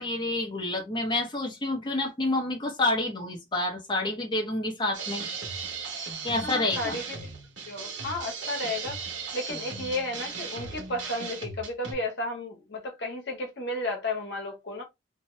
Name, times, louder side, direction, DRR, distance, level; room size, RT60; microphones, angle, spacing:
voice 1, 0.0-5.2 6.2-7.0, left 2 dB, 25° left, 0.7 m, -28 dB
sound 1, 4.9-11.9, right 5 dB, 75° right, 1.1 m, -37 dB
voice 2, 6.4-7.2 7.7-9.0 9.3-14.8, left 2 dB, 60° left, 0.9 m, -33 dB
2.7 x 2.2 x 3.0 m
head